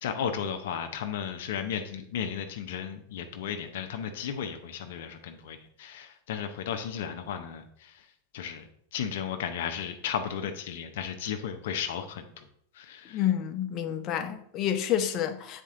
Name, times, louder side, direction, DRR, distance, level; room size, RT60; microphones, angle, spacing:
voice 1, 0.0-8.1 8.3-12.5 12.7-13.2, left 8 dB, 70° left, 0.7 m, -34 dB
voice 2, 13.1-15.6, left 10 dB, 40° left, 0.8 m, -29 dB
8.0 x 4.4 x 3.7 m
hypercardioid pair, 110°, 0 cm